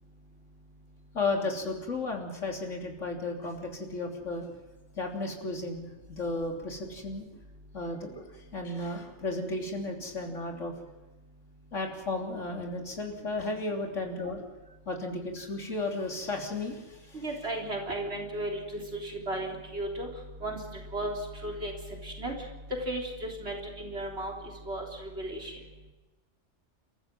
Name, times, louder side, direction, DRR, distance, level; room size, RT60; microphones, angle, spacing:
voice 1, 1.1-4.5 5.0-7.3 7.7-8.2 8.5-10.7 11.7-14.4 14.9-17.2 17.9-18.0, left 2 dB, 75° left, 2 dB, 3.7 m, -34 dB
voice 2, 17.2-20.1 20.4-20.6 20.9-21.1 21.4-21.7 22.0-22.3 22.9-24.3 24.7-24.9 25.2-25.5, right 1 dB, 55° right, 1 dB, 4.0 m, -34 dB
29.0 x 14.5 x 7.7 m, 1.1 s
omnidirectional pair, 1.3 m